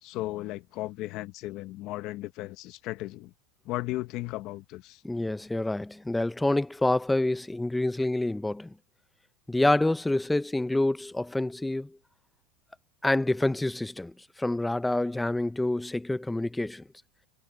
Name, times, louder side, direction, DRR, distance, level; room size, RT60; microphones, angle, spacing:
voice 1, 0.0-3.3 3.6-5.0, left 17 dB, 45° left, 0.9 m, -35 dB
voice 2, 5.0-8.7 9.5-11.9 13.0-14.1 14.4-16.8, left 2 dB, 5° left, 0.5 m, -27 dB
supercardioid pair, 145°, 0 cm